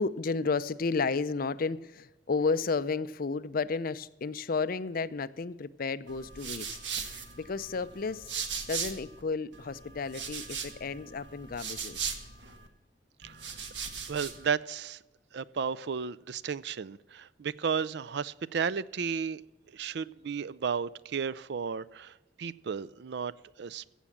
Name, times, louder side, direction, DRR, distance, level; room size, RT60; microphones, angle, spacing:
voice 1, 0.0-6.8 7.0-8.3 8.7-12.1, left 4 dB, 55° left, 0.5 m, -32 dB
sound 1, 6.1-9.2 9.5-12.7 13.2-14.5, right 6 dB, 85° right, 1.6 m, -39 dB
voice 2, 14.1-15.0 15.3-19.4 19.7-23.3 23.6-23.8, right 6 dB, 70° right, 0.5 m, -33 dB
15.5 x 7.4 x 7.2 m
head